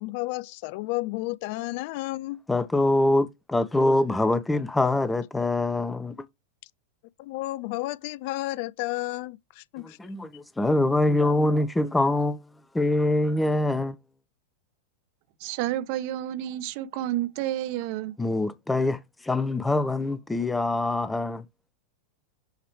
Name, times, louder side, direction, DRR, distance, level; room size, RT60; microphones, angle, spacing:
voice 1, 0.0-2.4 7.2-10.0, left 19 dB, 45° left, 0.4 m, -32 dB
voice 2, 2.5-6.1 10.0-12.4 12.7-14.0 18.2-19.0 19.2-21.4, left 2 dB, 10° left, 0.6 m, -24 dB
voice 3, 15.4-18.1, right 13 dB, 45° right, 0.8 m, -30 dB
8.0 x 3.0 x 4.6 m
figure-of-eight pair, 90°, 0 cm